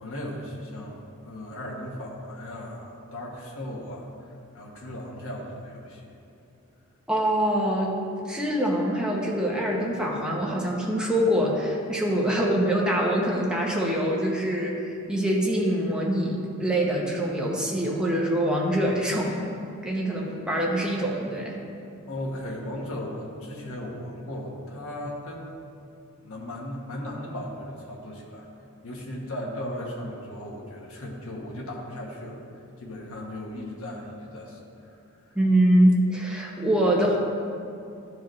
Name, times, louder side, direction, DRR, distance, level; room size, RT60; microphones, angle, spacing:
voice 1, 0.0-4.3 4.5-6.1 22.1-25.5 26.2-28.5 28.8-32.4 32.8-34.9 35.2-35.4, left 1 dB, 65° left, -2 dB, 1.3 m, -37 dB
voice 2, 7.1-8.0 8.3-19.5 19.8-21.6 35.3-37.2, right 1 dB, 5° right, -3 dB, 0.9 m, -24 dB
12.5 x 4.8 x 3.1 m, 2.6 s
head